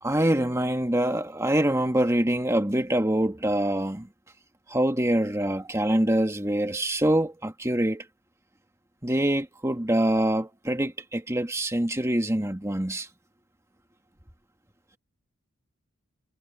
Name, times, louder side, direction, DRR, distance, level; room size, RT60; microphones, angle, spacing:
voice 1, 0.0-4.1 4.7-8.0 9.0-13.1, right 1 dB, 15° right, 1.8 m, -25 dB
head